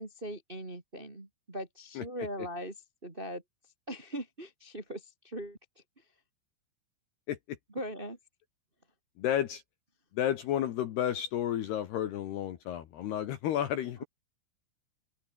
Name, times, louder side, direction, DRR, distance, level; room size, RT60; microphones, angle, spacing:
voice 1, 0.0-2.7 3.0-3.4 3.9-5.6 7.7-8.2, equal, 40° right, 0.7 m, -40 dB
voice 2, 9.2-9.6 10.1-14.0, left 11 dB, 65° left, 2.9 m, -32 dB
open air
omnidirectional pair, 6.0 m